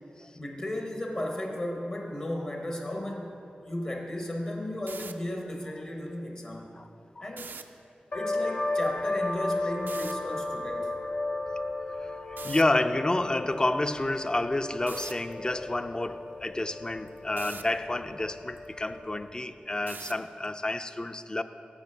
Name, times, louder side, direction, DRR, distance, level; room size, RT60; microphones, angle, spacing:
voice 1, 0.3-6.8 7.2-7.5 8.1-10.9, left 1 dB, 45° left, 0.9 m, -35 dB
sound 1, 4.7-5.1 7.3-7.6 9.9-10.1 12.4-12.6 14.9-15.1 17.4-17.6 19.9-20.2, right 5 dB, 85° right, 0.3 m, -41 dB
sound 2, 8.1-19.4, left 2 dB, 85° left, 0.6 m, -34 dB
voice 2, 12.0-21.4, left 2 dB, 25° left, 0.4 m, -30 dB
7.4 x 7.1 x 5.4 m
cardioid pair, 45°, 3 cm